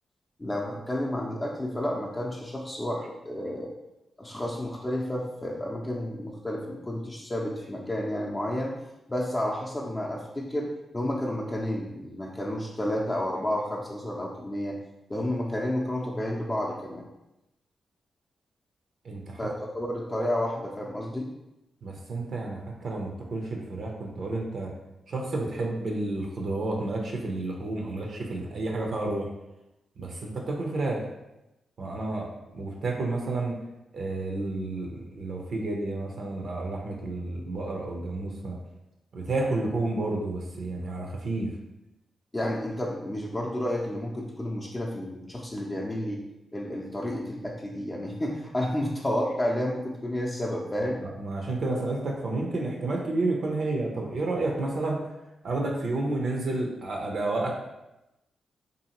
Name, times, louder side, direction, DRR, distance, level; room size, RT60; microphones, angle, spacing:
voice 1, 0.4-3.7 4.2-8.7 9.1-14.8 15.1-17.1 19.4-21.3 42.3-46.2 46.5-51.0, left 1 dB, 25° left, -2 dB, 0.5 m, -31 dB
voice 2, 19.0-19.4 21.8-24.7 25.1-29.3 30.0-31.0 31.8-33.6 33.9-38.6 39.1-41.5 50.8-55.1 55.4-57.5, right 2 dB, 65° right, 0 dB, 0.5 m, -30 dB
2.6 x 2.4 x 2.9 m, 0.94 s
supercardioid pair, 40°, 0 cm